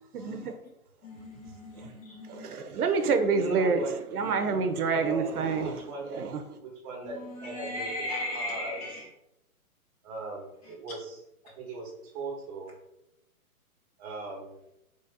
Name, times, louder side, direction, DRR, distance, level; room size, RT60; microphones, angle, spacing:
voice 1, 0.1-0.5 1.8-1.9 2.3-5.8 6.1-6.4, right 4 dB, 80° right, 0.7 m, -28 dB
voice 2, 1.0-2.5 7.0-9.1, left 1 dB, 25° left, 0.7 m, -37 dB
voice 3, 3.2-4.0 4.9-6.2 6.6-8.1 8.3-9.0 10.0-12.7 14.0-14.6, right 3 dB, 25° right, 0.9 m, -39 dB
3.1 x 2.8 x 3.6 m
hypercardioid pair, 140°, 44 cm